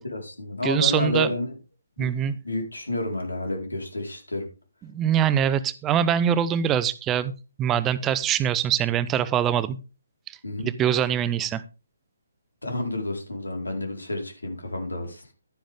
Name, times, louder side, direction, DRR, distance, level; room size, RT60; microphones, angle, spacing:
voice 1, 0.1-1.5 2.0-2.1 2.4-4.5 10.4-10.7 12.6-15.2, left 2 dB, 85° left, 3 dB, 4.5 m, -30 dB
voice 2, 0.6-1.3 2.0-2.4 4.8-7.3 7.6-9.8 10.3-11.6, right 9 dB, 15° right, 15 dB, 0.7 m, -23 dB
12.0 x 10.0 x 3.7 m, 0.32 s
figure-of-eight pair, 140°, 0 cm